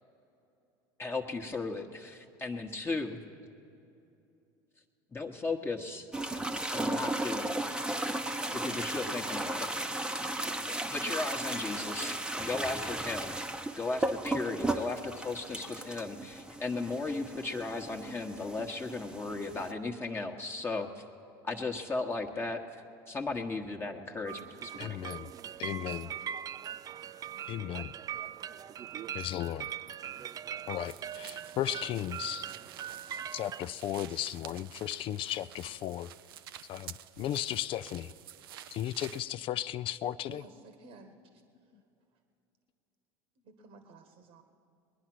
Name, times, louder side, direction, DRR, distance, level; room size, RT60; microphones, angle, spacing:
voice 1, 1.0-3.2 5.1-6.1 6.7-7.5 8.5-9.7 10.9-13.4 13.8-21.0 21.4-25.0, left 3 dB, 20° left, 2 dB, 1.1 m, -36 dB
sound 1, 6.1-19.7, right 1 dB, 5° right, 0.8 m, -35 dB
sound 2, 24.3-33.7, right 9 dB, 30° right, 0.4 m, -41 dB
voice 2, 24.8-25.3 25.6-26.1 27.5-27.9 29.1-29.7 30.7-32.4 33.3-36.1 36.7-38.1 38.7-40.4, left 12 dB, 50° left, 15 dB, 0.4 m, -35 dB
sound 3, 30.8-39.3, right 11 dB, 85° right, 0.5 m, -50 dB
voice 3, 40.2-41.4 43.4-44.4, right 3 dB, 65° right, 7 dB, 1.4 m, -53 dB
21.0 x 9.9 x 6.1 m, 2.7 s
hypercardioid pair, 90°, 12 cm